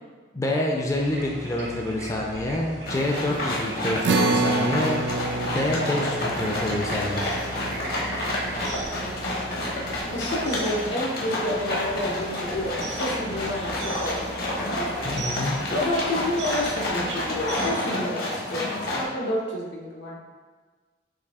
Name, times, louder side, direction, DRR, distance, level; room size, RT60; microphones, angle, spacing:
voice 1, 0.3-5.1 5.5-7.3 15.0-15.6 18.9-19.2, left 1 dB, 15° left, -1 dB, 0.4 m, -27 dB
sound 1, 0.9-17.7, right 2 dB, 65° right, 0.7 m, -38 dB
sound 2, 2.9-19.0, left 1 dB, 55° left, 0.9 m, -29 dB
sound 3, 4.0-10.7, right 3 dB, 80° right, 0.3 m, -29 dB
voice 2, 9.0-9.6 10.1-15.1 15.7-20.2, left 1 dB, 85° left, -3 dB, 1.0 m, -30 dB
4.8 x 2.7 x 3.5 m, 1.4 s
head